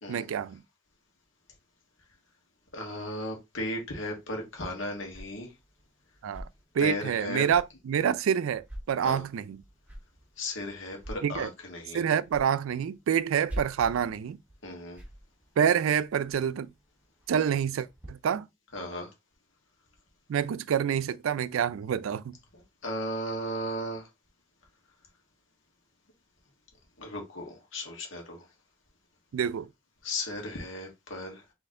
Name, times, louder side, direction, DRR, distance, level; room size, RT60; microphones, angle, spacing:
voice 1, 0.1-0.6 6.2-6.4 6.7-9.6 11.2-11.5 11.9-14.4 15.6-16.7 17.3-18.5 20.3-22.4 29.3-29.7, right 8 dB, 85° right, 0.3 m, -27 dB
voice 2, 2.7-5.5 6.8-7.5 9.0-9.2 10.4-12.0 14.6-15.0 18.7-19.1 22.5-24.1 27.0-28.4 30.0-31.4, left 1 dB, 75° left, 1.5 m, -36 dB
sound 1, 4.0-18.1, equal, 10° right, 1.1 m, -47 dB
4.1 x 3.1 x 3.7 m
head